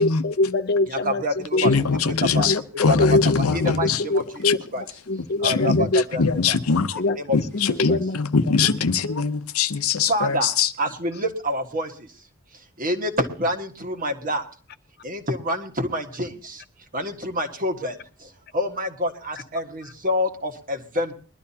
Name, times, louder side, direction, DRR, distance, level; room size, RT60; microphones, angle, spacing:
voice 1, 0.0-1.7 2.3-6.0 7.0-7.2 7.5-8.2 8.6-8.7, left 2 dB, 50° left, 0.6 m, -24 dB
voice 2, 1.6-4.0 4.4-4.5 5.4-5.9 6.2-7.0 7.3-10.7, left 5 dB, 80° left, 0.8 m, -22 dB
voice 3, 5.4-6.6 7.3-7.4 7.9-8.0 10.1-10.5 10.8-11.9 12.8-14.4 15.0-16.3 16.9-17.9 18.5-21.1, equal, 40° right, 1.6 m, -26 dB
22.0 x 12.0 x 2.8 m
head